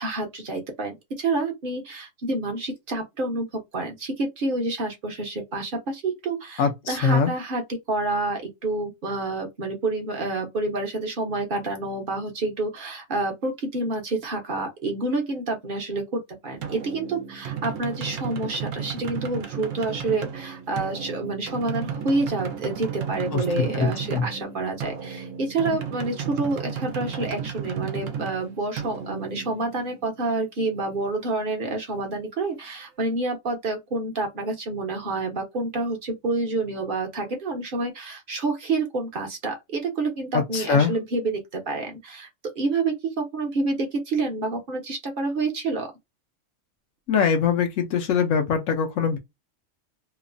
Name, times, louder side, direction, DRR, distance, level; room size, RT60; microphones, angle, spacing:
voice 1, 0.0-7.6 7.9-42.3 42.6-45.9, right 3 dB, 50° right, 0.8 m, -28 dB
voice 2, 6.6-7.3 23.6-24.2 40.3-40.9 47.1-49.2, left 6 dB, 75° left, 0.9 m, -22 dB
sound 1, 16.6-30.2, right 7 dB, 75° right, 1.0 m, -34 dB
2.9 x 2.0 x 2.5 m
omnidirectional pair, 1.4 m